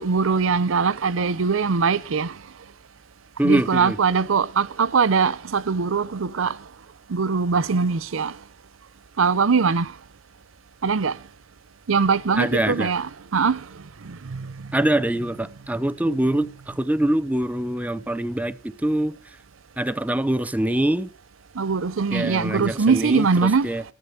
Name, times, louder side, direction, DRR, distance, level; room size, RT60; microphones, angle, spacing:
voice 1, 0.0-2.3 3.4-6.6 7.1-8.3 9.2-9.9 10.8-11.2 11.9-13.6 14.3-14.5 21.6-23.7, right 5 dB, 80° right, 0.6 m, -21 dB
voice 2, 3.4-4.0 12.4-12.9 14.7-19.1 19.8-21.1 22.1-23.8, right 1 dB, 10° right, 0.6 m, -24 dB
14.0 x 8.8 x 8.0 m
head